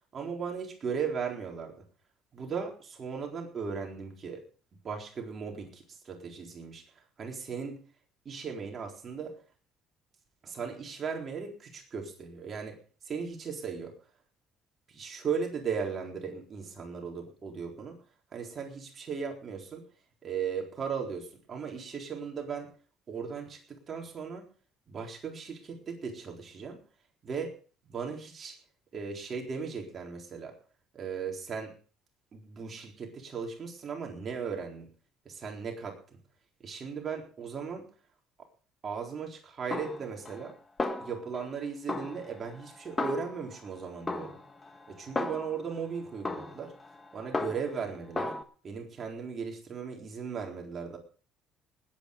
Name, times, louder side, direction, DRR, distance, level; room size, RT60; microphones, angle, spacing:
voice 1, 0.1-1.8 2.3-4.4 4.8-6.8 7.2-7.8 8.2-9.4 10.4-12.8 13.0-13.9 14.9-18.0 18.3-19.8 20.2-22.7 23.1-24.5 24.9-26.8 27.2-27.5 27.9-28.6 28.9-30.6 30.9-31.7 32.3-34.9 35.3-36.0 36.6-37.9 38.8-40.6 41.0-44.3 44.9-46.7 47.1-48.3 48.6-51.0, right 6 dB, 35° right, 1 dB, 4.1 m, -37 dB
Snare drum, 39.7-40.5 40.8-41.6 41.9-43.7 44.1-45.7 46.2-47.8 48.2-48.4, left 3 dB, 20° left, 1.7 m, -35 dB
20.0 x 9.3 x 5.2 m, 0.41 s
cardioid pair, 120°, 0 cm